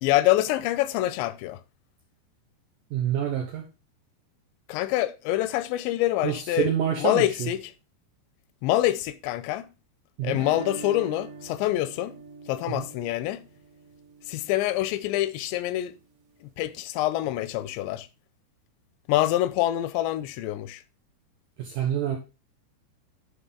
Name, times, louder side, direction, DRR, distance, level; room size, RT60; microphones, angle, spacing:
voice 1, 0.0-1.6 4.7-6.7 7.0-7.7 8.6-9.7 10.2-12.2 12.5-13.4 14.3-16.0 16.6-18.1 19.1-20.8, left 15 dB, 85° left, 2.7 m, -26 dB
voice 2, 2.9-3.6 6.2-7.5 10.2-10.4 12.7-12.9 21.6-22.2, right 9 dB, 80° right, 2.0 m, -27 dB
sound 1, 10.3-15.2, right 4 dB, 60° right, 2.0 m, -44 dB
10.5 x 5.5 x 3.7 m
omnidirectional pair, 5.2 m